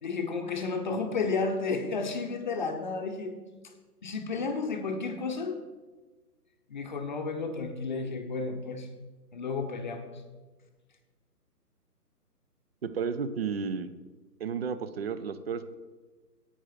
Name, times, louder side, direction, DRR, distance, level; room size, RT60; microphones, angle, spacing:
voice 1, 0.0-3.4 4.0-5.6 6.7-8.9 9.3-10.1, left 4 dB, 30° left, 5 dB, 0.8 m, -32 dB
voice 2, 12.8-13.9 14.4-15.7, right 6 dB, 40° right, 13 dB, 0.6 m, -32 dB
10.0 x 8.8 x 4.7 m, 1.3 s
figure-of-eight pair, 140°, 48 cm